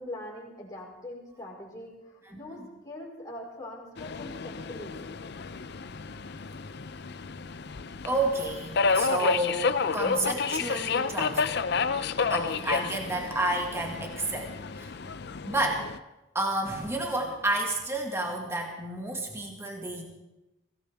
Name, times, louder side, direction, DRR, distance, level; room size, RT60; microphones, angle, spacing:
voice 1, 0.0-5.0, left 1 dB, 20° left, -4 dB, 4.6 m, -42 dB
Subway metro underground, 4.0-16.0, left 5 dB, 55° left, 0.5 m, -31 dB
voice 2, 8.1-11.6 12.3-14.9 15.5-15.9 16.3-20.0, right 2 dB, 15° right, 1 dB, 1.9 m, -30 dB
22.5 x 17.0 x 3.5 m, 0.98 s
head